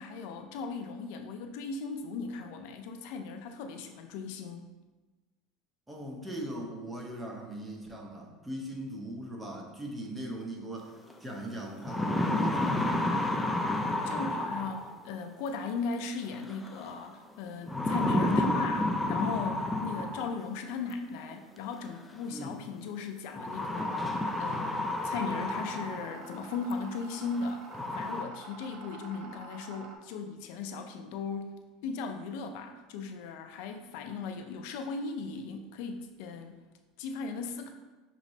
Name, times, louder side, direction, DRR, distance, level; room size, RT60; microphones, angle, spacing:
voice 1, 0.0-4.7 14.0-36.6 37.0-37.7, left 4 dB, 70° left, 6 dB, 0.4 m, -37 dB
voice 2, 5.9-10.9 11.2-13.1 22.3-22.6, right 1 dB, 10° right, 0 dB, 0.8 m, -40 dB
sound 1, 11.1-11.2 11.7-15.1 16.5-16.9 17.7-20.5 21.7-21.8 23.3-26.2 26.7-26.8 27.3-27.4 27.7-28.2, left 2 dB, 10° left, 0.4 m, -30 dB
sound 2, 23.7-30.0, right 3 dB, 50° right, 0.7 m, -48 dB
5.9 x 3.0 x 2.7 m, 1.2 s
supercardioid pair, 115°, 0 cm